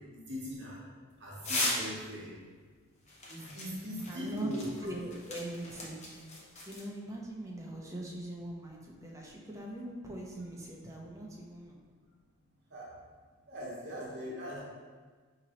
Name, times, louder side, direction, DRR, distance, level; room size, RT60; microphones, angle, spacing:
voice 1, 0.3-0.8 1.2-2.3 3.3-4.6 12.7-12.8 13.5-14.6, equal, 55° right, -5 dB, 0.9 m, -40 dB
sound 1, 1.4-2.0 3.1-6.8, left 1 dB, 35° left, 0.7 m, -37 dB
voice 2, 4.1-6.0 6.7-11.8, right 1 dB, 15° right, -2 dB, 0.5 m, -41 dB
5.1 x 2.9 x 2.9 m, 1.5 s
head